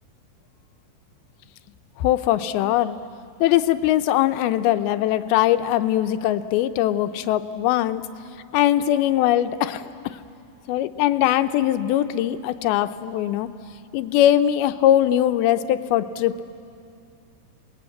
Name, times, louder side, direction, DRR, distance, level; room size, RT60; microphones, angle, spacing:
voice 1, 2.0-3.0 3.4-8.0 8.5-10.2 10.7-13.5 13.9-16.4, left 12 dB, 90° left, 11 dB, 2.6 m, -21 dB
27.0 x 19.5 x 8.4 m, 2.5 s
omnidirectional pair, 4.3 m